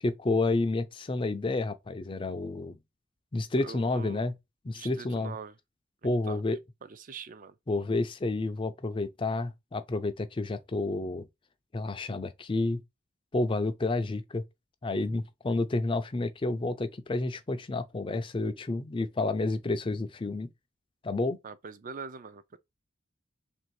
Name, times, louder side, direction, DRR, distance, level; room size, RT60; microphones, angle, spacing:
voice 1, 0.0-2.8 3.3-4.4 4.6-5.4 6.0-6.6 7.7-11.3 11.7-12.8 13.3-14.4 14.8-20.5 21.0-21.4, left 2 dB, 25° left, 0.4 m, -30 dB
voice 2, 3.6-4.2 4.7-5.5 6.3-6.4 6.8-7.5 21.4-22.6, right 5 dB, 40° right, 0.4 m, -43 dB
3.4 x 2.6 x 4.6 m
head